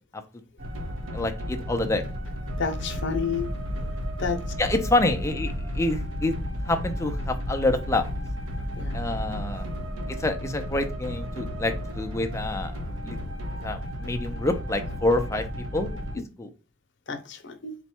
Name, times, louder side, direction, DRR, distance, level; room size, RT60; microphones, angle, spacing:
sound 1, 0.6-16.2, equal, 80° right, 1.1 m, -33 dB
voice 1, 1.1-2.0 4.6-6.4 6.7-8.1 8.9-9.7 10.2-12.7 13.0-13.2 13.6-15.4 15.7-15.9 16.4-16.5, left 2 dB, 15° left, 6 dB, 0.5 m, -27 dB
voice 2, 2.6-3.5 4.2-4.4 8.8-8.9 16.2-16.3 17.1-17.8, left 5 dB, 60° left, 5 dB, 0.7 m, -30 dB
4.1 x 2.3 x 4.3 m, 0.34 s
head